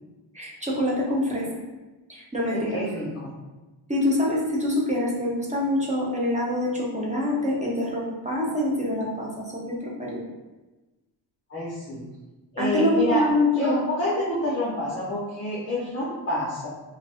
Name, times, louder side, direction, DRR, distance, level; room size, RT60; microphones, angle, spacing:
voice 1, 0.3-1.5 2.1-2.8 3.9-10.2 12.6-13.8, left 1 dB, 15° right, -5 dB, 0.4 m, -25 dB
voice 2, 2.5-3.3 11.5-12.0 12.5-13.2 13.5-16.7, left 1 dB, 25° left, -8 dB, 0.6 m, -28 dB
2.6 x 2.3 x 3.3 m, 1.1 s
wide cardioid pair, 155°, 48 cm